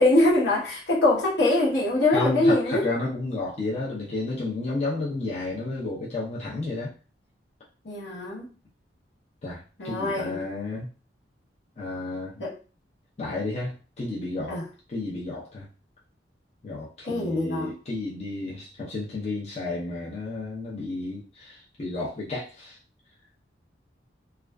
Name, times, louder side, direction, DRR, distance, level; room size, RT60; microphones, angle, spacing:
voice 1, 0.0-2.9 7.8-8.5 9.8-10.4 12.4-12.5 14.5-14.6 17.0-17.7, left 2 dB, 70° left, -4 dB, 0.9 m, -23 dB
voice 2, 2.1-6.9 9.4-10.9 11.8-12.4 13.2-14.6 14.9-15.7 16.6-22.8, left 2 dB, 35° left, -6 dB, 0.6 m, -32 dB
2.4 x 2.3 x 2.2 m, 0.36 s
head